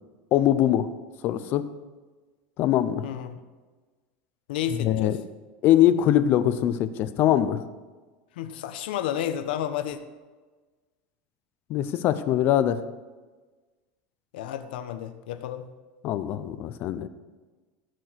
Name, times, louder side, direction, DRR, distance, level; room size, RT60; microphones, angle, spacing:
voice 1, 0.3-0.9 1.2-1.6 2.6-3.0 4.8-5.2 5.6-7.6 11.7-12.8 16.0-17.1, left 11 dB, 45° left, 12 dB, 0.7 m, -22 dB
voice 2, 3.0-3.4 4.5-5.2 8.3-10.0 14.3-15.7, left 10 dB, 85° left, 8 dB, 1.1 m, -31 dB
17.0 x 6.2 x 4.7 m, 1.3 s
supercardioid pair, 150°, 5 cm